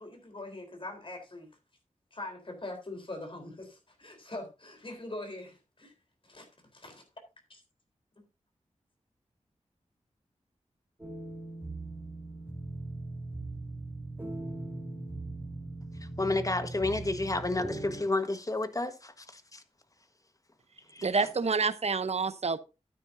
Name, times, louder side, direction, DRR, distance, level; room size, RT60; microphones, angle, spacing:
voice 1, 0.0-1.5 2.1-5.9 6.2-7.0 7.5-7.6, left 2 dB, 45° left, 3.8 m, -43 dB
sound 1, 11.0-18.0, right 2 dB, 15° right, 3.5 m, -40 dB
voice 2, 16.2-19.6 20.9-21.1, left 2 dB, 25° left, 1.4 m, -31 dB
voice 3, 21.0-22.6, right 4 dB, 60° right, 0.9 m, -28 dB
12.5 x 9.4 x 2.7 m
wide cardioid pair, 65°, 12 cm